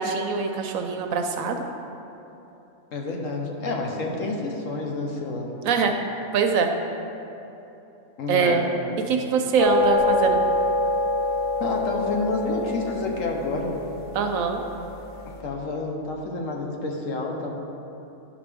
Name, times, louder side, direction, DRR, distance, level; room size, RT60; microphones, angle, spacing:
voice 1, 0.0-1.6 5.6-6.0 6.3-6.7 8.3-8.6 9.1-10.4 14.1-14.6, right 5 dB, 75° right, 5 dB, 1.0 m, -23 dB
voice 2, 2.9-5.5 8.2-8.6 11.6-13.7 15.2-17.5, left 3 dB, 65° left, 1 dB, 1.2 m, -29 dB
sound 1, 9.6-15.1, left 2 dB, 50° left, 0.6 m, -25 dB
10.0 x 5.1 x 3.4 m, 3.0 s
omnidirectional pair, 1.5 m